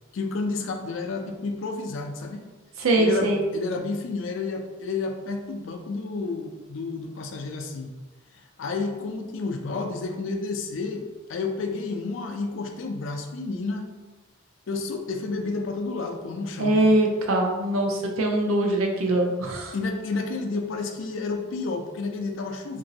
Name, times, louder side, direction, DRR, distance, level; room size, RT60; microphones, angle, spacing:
voice 1, 0.1-2.4 3.0-7.9 8.3-11.0 11.3-13.9 14.7-16.8 19.7-22.8, left 3 dB, 65° left, 5 dB, 0.4 m, -30 dB
voice 2, 2.8-3.4 16.6-19.7, right 1 dB, 85° right, 2 dB, 0.5 m, -22 dB
2.9 x 2.6 x 2.7 m, 1.2 s
head